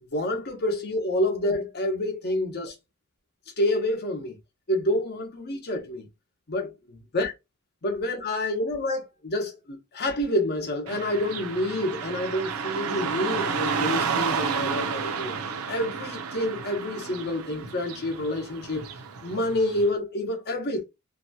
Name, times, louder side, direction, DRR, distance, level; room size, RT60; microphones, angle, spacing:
voice 1, 0.1-2.7 3.6-4.4 4.7-6.1 6.5-6.7 7.1-7.3 7.8-15.3 15.7-18.9 19.2-20.8, left 1 dB, 50° left, 0.8 m, -28 dB
Car passing by / Traffic noise roadway noise, 10.9-19.9, right 6 dB, 80° right, 0.5 m, -31 dB
2.8 x 2.2 x 2.7 m
head